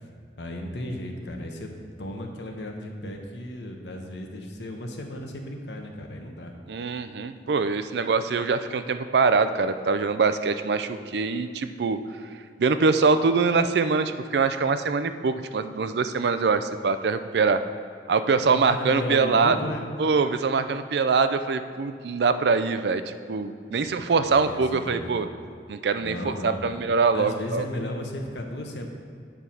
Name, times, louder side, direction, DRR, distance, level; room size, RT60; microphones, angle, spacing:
voice 1, 0.4-1.7 2.0-6.5 18.5-19.8 23.8-25.2 26.0-26.8 27.1-28.9, left 1 dB, 80° left, 2 dB, 1.1 m, -35 dB
voice 2, 6.7-12.0 12.6-17.6 18.1-19.6 20.0-25.3 25.7-27.6, right 4 dB, 70° right, 11 dB, 0.4 m, -23 dB
8.9 x 4.7 x 5.6 m, 2.3 s
head